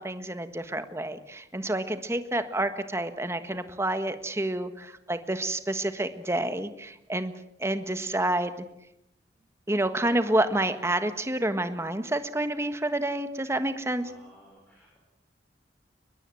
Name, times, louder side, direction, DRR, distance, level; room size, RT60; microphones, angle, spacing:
voice 1, 0.0-7.3 7.6-8.6 9.7-14.1, right 1 dB, 15° right, 10 dB, 1.5 m, -29 dB
voice 2, 14.0-15.0, equal, 10° left, -2 dB, 5.5 m, -55 dB
22.5 x 21.5 x 7.8 m, 0.85 s
head